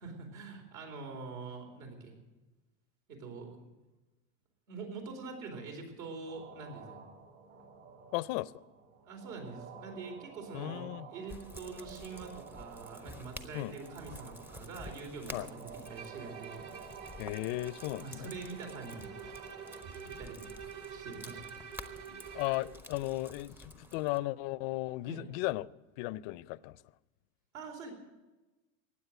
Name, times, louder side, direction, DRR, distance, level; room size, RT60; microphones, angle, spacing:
voice 1, 0.0-2.1 3.1-3.7 4.7-7.0 9.1-16.6 18.0-19.1 20.0-20.5 20.9-21.5 25.1-25.3 27.5-27.9, right 4 dB, 75° right, 4.3 m, -44 dB
sound 1, 6.3-19.8, right 6 dB, 60° right, 6.7 m, -52 dB
voice 2, 8.1-8.6 10.5-11.1 13.5-13.7 15.3-15.5 17.2-18.3 22.3-25.7 26.0-26.8, left 19 dB, 50° left, 0.4 m, -35 dB
sound 2, 11.3-24.2, left 1 dB, 5° right, 0.5 m, -51 dB
Bowed string instrument, 15.8-22.8, right 7 dB, 40° right, 1.1 m, -48 dB
15.5 x 9.6 x 7.9 m
supercardioid pair, 140°, 40 cm